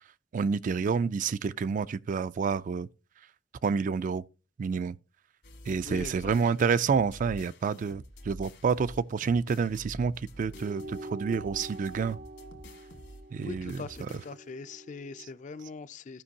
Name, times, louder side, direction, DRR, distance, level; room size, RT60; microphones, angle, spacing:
voice 1, 0.3-2.9 3.6-4.2 4.6-5.0 5.7-12.2 13.3-14.2 15.2-15.3, right 5 dB, 45° right, 0.3 m, -29 dB
sound 1, 5.4-14.6, equal, 65° left, 1.5 m, -48 dB
voice 2, 5.8-6.3 13.4-16.2, left 4 dB, 40° left, 0.4 m, -42 dB
sound 2, 10.5-15.3, right 1 dB, 75° right, 1.0 m, -45 dB
14.0 x 5.2 x 2.8 m
head